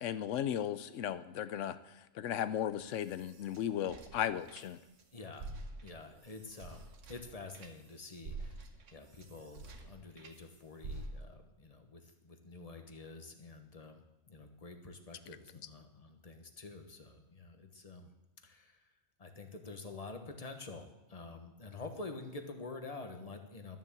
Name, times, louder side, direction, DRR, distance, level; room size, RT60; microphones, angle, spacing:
voice 1, 0.0-1.8 2.2-4.8, left 10 dB, 75° left, 14 dB, 1.0 m, -35 dB
sound 1, 2.7-5.0 5.3-10.4 10.8-11.5, right 2 dB, 75° right, 1.4 m, -48 dB
voice 2, 5.1-5.5 5.8-8.6 8.9-18.1 18.4-18.9 19.2-23.8, left 3 dB, 30° left, 6 dB, 1.2 m, -48 dB
12.5 x 7.5 x 7.3 m, 0.95 s
omnidirectional pair, 1.3 m